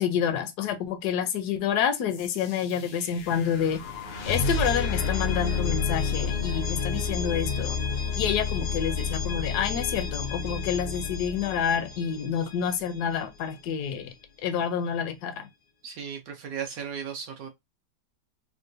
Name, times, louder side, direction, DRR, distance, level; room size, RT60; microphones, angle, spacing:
voice 1, 0.0-3.8 4.3-7.8 8.2-14.1 14.4-15.5, left 8 dB, 70° left, 1.0 m, -28 dB
sound 1, 2.1-12.9, left 5 dB, 90° left, 1.6 m, -30 dB
voice 2, 15.8-17.5, right 7 dB, 75° right, 0.8 m, -36 dB
3.7 x 2.2 x 2.5 m
omnidirectional pair, 2.0 m